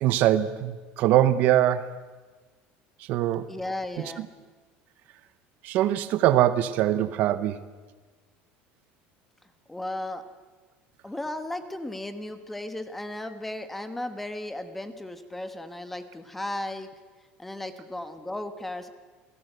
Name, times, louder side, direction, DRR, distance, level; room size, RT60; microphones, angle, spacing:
voice 1, 0.0-1.9 3.1-3.4 5.6-7.6, right 12 dB, 45° right, 13 dB, 0.9 m, -22 dB
voice 2, 3.5-4.3 9.7-10.2 11.0-16.9 17.4-18.9, left 1 dB, 5° left, 9 dB, 1.3 m, -35 dB
27.5 x 18.5 x 8.1 m, 1.4 s
cardioid pair, 175°, 4 cm